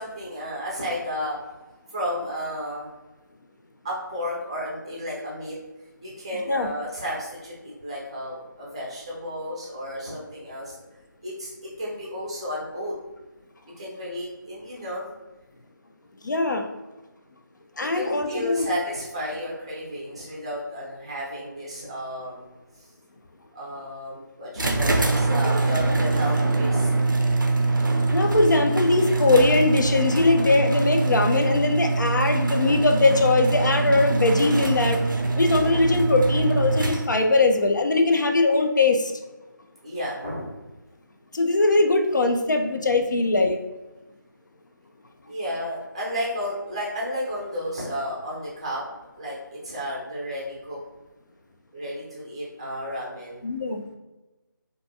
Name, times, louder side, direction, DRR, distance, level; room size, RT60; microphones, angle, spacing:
voice 1, 0.0-1.4 1.9-2.9 3.8-5.6 6.0-10.7 11.2-11.5 11.8-12.9 13.8-15.1 17.8-22.5 22.8-22.9 23.5-26.9 39.8-40.5 45.2-48.8 49.1-50.8 51.7-53.4, equal, 15° right, -5 dB, 0.5 m, -32 dB
voice 2, 16.2-16.6 17.8-18.7 28.1-35.0 35.4-39.1 41.3-43.6 53.4-53.9, left 3 dB, 65° left, 5 dB, 0.4 m, -21 dB
sound 1, 24.5-37.3, right 3 dB, 75° right, 0.4 m, -23 dB
2.5 x 2.1 x 2.6 m, 1.1 s
figure-of-eight pair, 165°, 11 cm